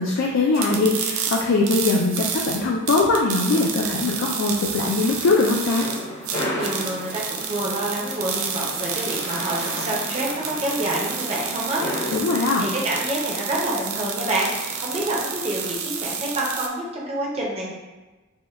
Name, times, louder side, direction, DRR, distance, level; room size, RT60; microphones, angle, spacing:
voice 1, 0.0-5.9 12.1-12.6, left 3 dB, 65° left, -1 dB, 0.3 m, -21 dB
sound 1, 0.5-16.7, right 7 dB, 75° right, 0.4 m, -30 dB
sound 2, 4.0-15.8, left 1 dB, 80° left, 1.0 m, -35 dB
voice 2, 6.5-11.8 12.6-17.7, right 1 dB, 30° right, -3 dB, 0.6 m, -27 dB
4.3 x 2.2 x 2.3 m, 1.1 s
head